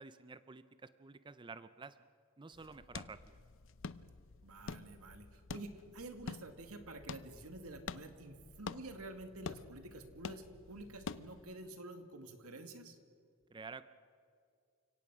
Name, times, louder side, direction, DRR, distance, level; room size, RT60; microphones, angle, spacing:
voice 1, 0.0-2.0 2.4-3.4 13.5-13.9, right 4 dB, 20° right, 13 dB, 0.5 m, -51 dB
sound 1, 2.5-11.5, left 4 dB, 60° left, 0.6 m, -48 dB
voice 2, 4.4-13.0, right 2 dB, 90° right, 7 dB, 2.2 m, -49 dB
29.5 x 17.5 x 6.1 m, 2.3 s
head